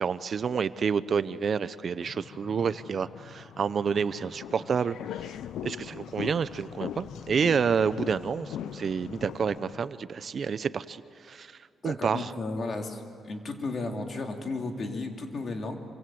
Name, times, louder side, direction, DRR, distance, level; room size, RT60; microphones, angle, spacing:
voice 1, 0.0-5.3 5.6-11.6 11.8-12.3, right 6 dB, 50° right, 15 dB, 0.6 m, -29 dB
sound 1, 2.0-9.9, left 7 dB, 70° left, 1.2 m, -48 dB
sound 2, 4.3-9.6, left 11 dB, 90° left, 0.6 m, -40 dB
voice 2, 11.8-15.7, left 3 dB, 45° left, 3 dB, 3.1 m, -34 dB
27.0 x 24.5 x 7.8 m, 2.3 s
cardioid pair, 115°, 0 cm